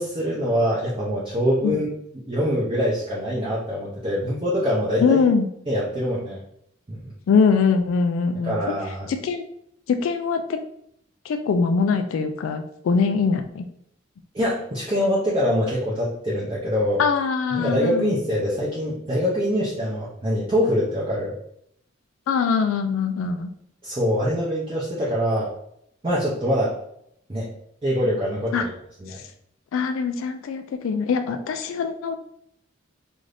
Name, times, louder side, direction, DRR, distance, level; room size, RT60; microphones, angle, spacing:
voice 1, 0.0-1.9 2.3-5.2 5.7-6.4 6.9-7.1 8.4-9.1 14.3-17.0 17.5-21.4 23.8-25.5 26.0-26.8 27.3-27.5 27.8-28.7 29.0-29.2, equal, 25° right, -6 dB, 0.5 m, -24 dB
voice 2, 5.0-5.5 7.3-8.8 9.1-9.5 9.9-10.6 11.2-13.6 17.0-18.2 22.3-23.5 28.5-28.7 29.1-29.2 29.7-32.2, left 5 dB, 80° left, 6 dB, 0.3 m, -22 dB
2.5 x 2.4 x 3.3 m, 0.70 s
head